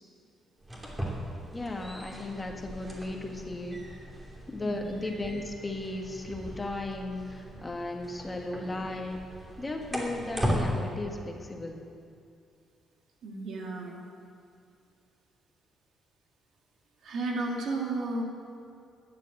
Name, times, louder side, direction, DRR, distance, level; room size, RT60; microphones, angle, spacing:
sound 1, 0.6-10.7, equal, 15° right, 2.9 m, -38 dB
voice 1, 1.5-3.8 4.5-9.2 9.6-11.8, left 2 dB, 20° left, 2 dB, 1.8 m, -36 dB
voice 2, 4.6-5.0 13.2-14.0 17.0-18.2, right 2 dB, 70° right, 0 dB, 2.4 m, -33 dB
13.0 x 9.8 x 7.9 m, 2.4 s
cardioid pair, 90°, 0 cm